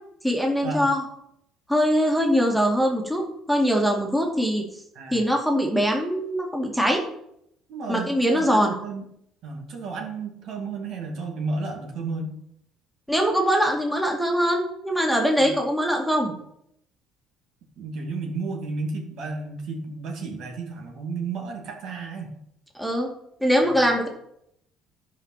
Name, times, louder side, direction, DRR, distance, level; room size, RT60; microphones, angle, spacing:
voice 1, 0.2-1.0 1.7-3.2 3.5-4.6 5.1-7.0 7.9-8.7 13.1-16.3 22.8-23.1 23.4-24.1, equal, 5° right, 0 dB, 2.2 m, -22 dB
voice 2, 4.9-5.3 7.7-9.0 9.4-12.4 15.4-15.5 17.8-22.4 23.7-23.8, right 3 dB, 65° right, 2 dB, 2.6 m, -32 dB
11.0 x 5.4 x 7.4 m, 0.75 s
cardioid pair, 105°, 0 cm